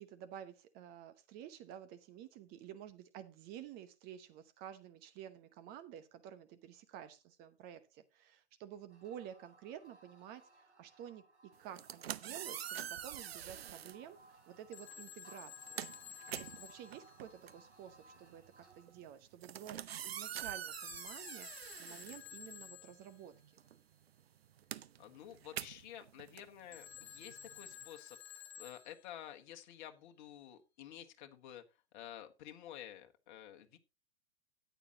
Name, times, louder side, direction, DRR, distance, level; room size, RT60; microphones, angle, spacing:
voice 1, 0.0-11.2 11.6-14.2 14.5-15.9 16.4-19.8 20.0-23.6, right 10 dB, 30° right, 11 dB, 0.9 m, -51 dB
sound 1, 8.9-19.0, right 2 dB, 80° right, 6.3 m, -62 dB
sound 2, 11.6-14.0 14.9-15.1 15.4-22.9 23.2-27.9, right 10 dB, 60° right, 0.7 m, -46 dB
Telephone, 14.7-17.8 20.7-23.3 26.7-29.4, left 9 dB, 65° left, 1.0 m, -53 dB
voice 2, 25.0-31.6 31.9-33.8, left 11 dB, 45° left, 5 dB, 1.5 m, -51 dB
13.5 x 9.2 x 2.9 m, 0.25 s
figure-of-eight pair, 110°, 34 cm